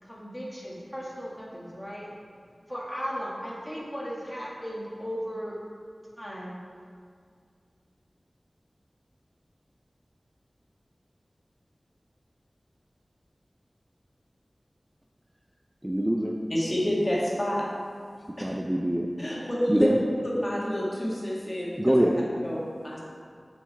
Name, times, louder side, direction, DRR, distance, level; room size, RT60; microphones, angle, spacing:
voice 1, 0.0-2.1 2.7-5.6 6.2-6.6, equal, ahead, -5 dB, 1.5 m, -36 dB
voice 2, 15.8-16.4 18.4-19.1 19.7-20.0 21.8-22.2, equal, 15° right, 0 dB, 0.4 m, -24 dB
voice 3, 16.5-17.6 18.4-18.5 19.2-20.0 20.2-22.1 22.4-23.0, equal, 30° left, -6 dB, 1.8 m, -28 dB
7.1 x 4.7 x 4.5 m, 2.1 s
wide cardioid pair, 65°, 0 cm